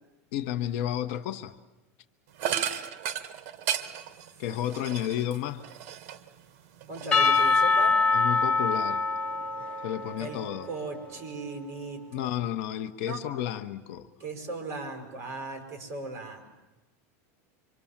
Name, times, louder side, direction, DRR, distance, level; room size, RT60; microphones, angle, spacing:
voice 1, 0.3-1.5 4.4-5.6 8.1-9.0 9.8-10.7 12.1-14.1, left 11 dB, 55° left, 1.0 m, -32 dB
sound 1, 2.4-6.4 6.8-7.9, right 9 dB, 50° right, 1.6 m, -34 dB
voice 2, 6.9-8.0 10.2-10.4 10.7-12.3 13.0-13.2 14.2-16.4, right 3 dB, 30° right, 5.8 m, -37 dB
Percussion / Church bell, 7.1-11.4, left 4 dB, 15° left, 1.3 m, -25 dB
26.5 x 25.0 x 7.4 m
supercardioid pair, 160°, 8 cm